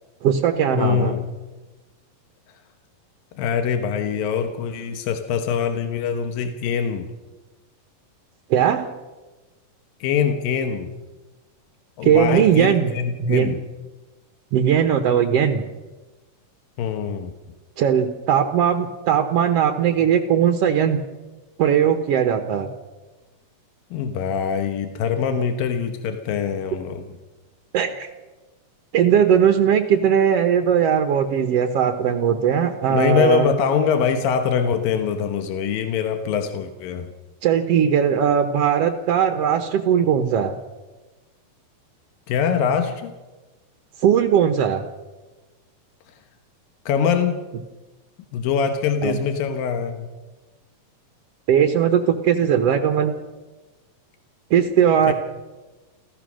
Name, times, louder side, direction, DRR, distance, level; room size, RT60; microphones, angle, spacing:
voice 1, 0.2-1.1 8.5-8.9 12.0-12.9 13.2-13.5 14.5-15.6 17.8-21.0 21.6-22.7 27.7-28.1 28.9-33.5 37.4-40.5 44.0-44.8 49.0-49.2 51.5-53.1 54.5-55.1, right 8 dB, 65° right, 7 dB, 1.6 m, -19 dB
voice 2, 0.8-1.2 3.4-7.1 10.0-10.9 12.0-13.6 16.8-17.3 23.9-27.1 32.9-37.1 42.3-43.1 46.9-47.4 48.3-50.1 55.1-55.2, left 7 dB, 85° left, 6 dB, 2.9 m, -23 dB
29.5 x 14.5 x 6.3 m, 1.2 s
omnidirectional pair, 4.0 m